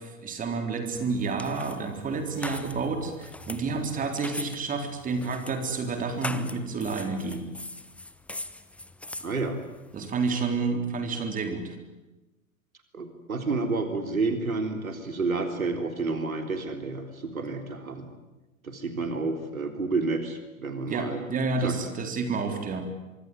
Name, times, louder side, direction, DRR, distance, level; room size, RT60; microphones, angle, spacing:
voice 1, 0.0-7.4 9.9-11.8 20.9-22.9, right 4 dB, 20° right, 5 dB, 3.9 m, -30 dB
sound 1, 0.9-10.1, left 2 dB, 5° left, 1.0 m, -41 dB
voice 2, 9.2-9.6 12.9-18.1 18.6-21.2 21.6-21.7, right 3 dB, 75° right, 6 dB, 3.8 m, -30 dB
26.0 x 24.0 x 9.4 m, 1.1 s
figure-of-eight pair, 100°, 42 cm